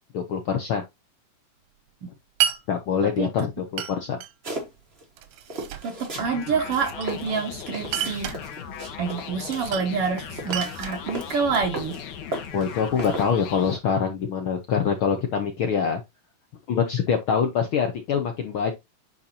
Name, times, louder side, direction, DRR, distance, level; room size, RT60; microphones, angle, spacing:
voice 1, 0.1-0.8 2.7-4.2 12.5-16.0 16.7-18.7, left 6 dB, 65° left, 1.3 m, -24 dB
Glass, 2.4-2.6 3.8-4.3 5.2-5.9 6.7-7.4 7.9-8.4 9.5-9.9 10.2-11.8, right 10 dB, 80° right, 2.3 m, -30 dB
sound 1, 4.4-5.0 5.5-6.3 6.6-9.3 9.9-12.0 12.3-13.3, right 2 dB, 30° right, 1.3 m, -36 dB
voice 2, 5.8-8.4 9.0-12.0, right 5 dB, 60° right, 1.7 m, -27 dB
sound 2, 6.2-13.8, left 7 dB, 80° left, 2.5 m, -38 dB
9.3 x 4.3 x 2.8 m
omnidirectional pair, 3.4 m